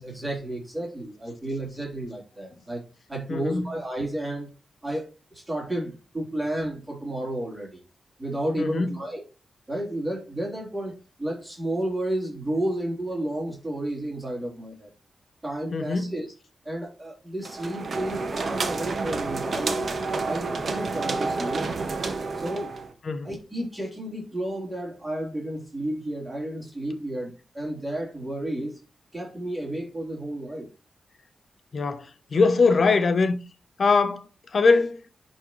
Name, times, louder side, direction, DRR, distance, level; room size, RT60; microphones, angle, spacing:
voice 1, 0.0-4.5 4.8-7.8 8.2-9.2 9.7-14.9 15.4-16.3 16.6-19.8 20.2-21.7 22.3-22.8 23.2-28.7 29.1-30.7, right 1 dB, 15° right, 3.9 m, -32 dB
voice 2, 3.3-3.6 8.6-8.9 15.7-16.1 23.1-23.3 31.7-32.1 32.3-33.4 33.8-34.2 34.5-35.0, left 4 dB, 50° left, 1.0 m, -21 dB
sound 1, 17.4-22.9, right 3 dB, 50° right, 1.4 m, -29 dB
10.5 x 4.5 x 3.2 m
wide cardioid pair, 105°, 0 cm